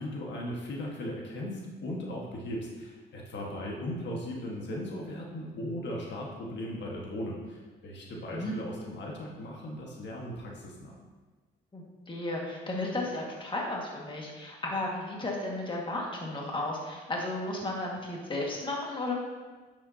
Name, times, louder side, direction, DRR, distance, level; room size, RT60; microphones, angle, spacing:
voice 1, 0.0-10.9, left 1 dB, 65° left, -2 dB, 1.6 m, -37 dB
voice 2, 11.7-19.1, left 2 dB, 25° left, -2 dB, 1.8 m, -34 dB
9.7 x 7.0 x 2.8 m, 1.3 s
cardioid pair, 90°, 20 cm